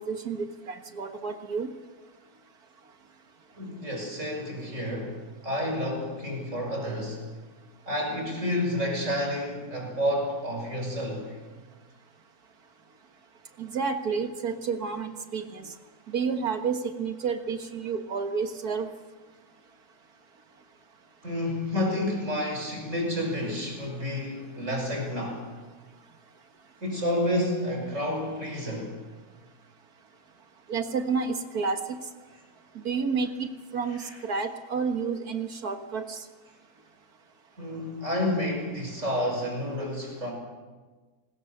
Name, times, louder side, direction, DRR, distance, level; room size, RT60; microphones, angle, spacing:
voice 1, 0.0-1.7 13.6-15.7 16.1-18.9 23.8-23.9 30.7-32.0 32.9-36.2, right 5 dB, 75° right, 6 dB, 2.1 m, -30 dB
voice 2, 3.6-5.2 5.4-7.2 7.9-11.3 21.2-25.4 26.8-28.9 34.0-34.1 37.6-40.3, left 1 dB, 50° right, 2 dB, 6.3 m, -30 dB
27.0 x 20.5 x 6.7 m, 1.3 s
omnidirectional pair, 1.6 m